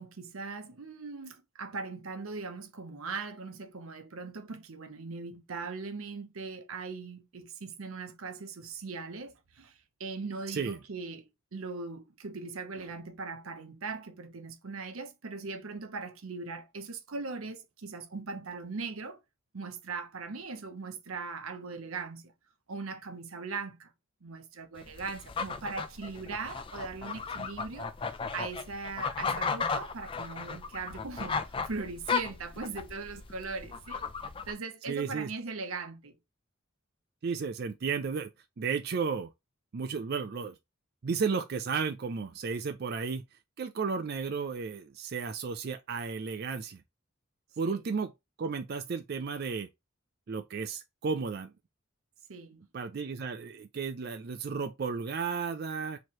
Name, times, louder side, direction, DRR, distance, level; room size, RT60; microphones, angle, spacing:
voice 1, 0.0-19.2 19.5-22.3 22.7-23.9 24.2-36.2 47.6-47.8 52.3-52.6, right 4 dB, 90° right, 0.8 m, -40 dB
voice 2, 10.5-10.8 34.9-35.3 37.2-38.3 38.6-39.3 39.7-40.5 41.0-43.2 43.6-46.8 47.6-48.1 48.4-49.7 50.3-51.5 52.7-56.0, right 5 dB, 50° right, 0.4 m, -33 dB
sound 1, 24.8-34.5, left 5 dB, 25° left, 0.3 m, -35 dB
3.1 x 3.0 x 4.4 m
head